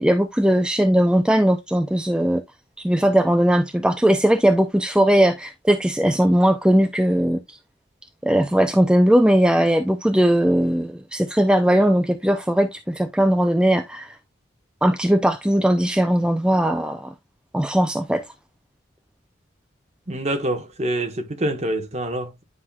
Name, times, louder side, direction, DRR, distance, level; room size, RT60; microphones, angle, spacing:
voice 1, 0.0-2.4 2.8-7.6 8.2-14.2 14.8-17.1 17.5-18.2, equal, 5° right, 0.4 m, -19 dB
voice 2, 20.1-22.4, right 1 dB, 35° right, 1.3 m, -26 dB
9.7 x 5.7 x 2.3 m
head